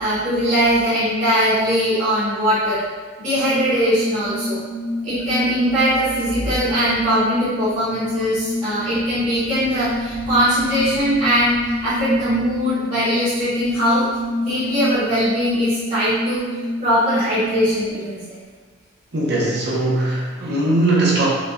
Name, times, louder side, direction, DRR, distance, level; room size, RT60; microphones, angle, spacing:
voice 1, 0.0-2.8 3.2-4.6 5.0-14.1 14.4-16.4 16.8-18.4, equal, 40° right, -14 dB, 1.0 m, -20 dB
sound 1, 3.4-17.9, left 1 dB, 15° right, 0.9 m, -28 dB
voice 2, 19.1-21.3, right 2 dB, 60° right, -5 dB, 0.9 m, -19 dB
5.3 x 2.4 x 2.5 m, 1.5 s
head